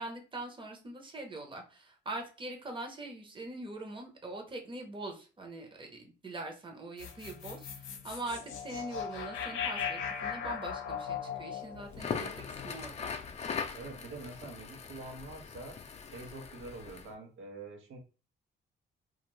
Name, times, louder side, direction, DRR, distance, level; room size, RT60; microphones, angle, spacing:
voice 1, 0.0-13.1, right 2 dB, 25° right, 2 dB, 0.8 m, -43 dB
sound 1, 7.0-13.3, left 7 dB, 85° left, 0.6 m, -39 dB
Crackle, 11.9-17.1, left 6 dB, 35° left, 0.4 m, -40 dB
voice 2, 13.7-18.0, right 2 dB, 80° right, 3 dB, 0.9 m, -46 dB
2.5 x 2.4 x 3.1 m, 0.35 s
cardioid pair, 90°, 20 cm